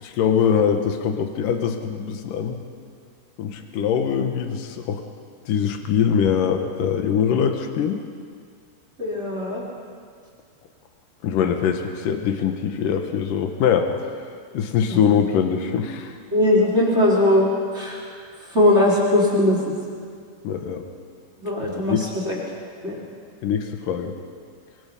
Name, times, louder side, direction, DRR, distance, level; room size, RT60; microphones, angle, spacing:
voice 1, 0.0-2.6 3.4-5.0 5.5-8.0 11.2-14.1 14.5-16.1 20.4-20.8 21.7-22.1 23.4-24.1, left 7 dB, 75° left, 5 dB, 2.0 m, -22 dB
voice 2, 9.0-9.6 14.9-15.0 16.3-18.0 18.4-19.8 21.4-22.4 22.8-23.0, left 1 dB, 15° right, -4 dB, 3.1 m, -20 dB
26.0 x 24.0 x 5.4 m, 2.1 s
omnidirectional pair, 5.8 m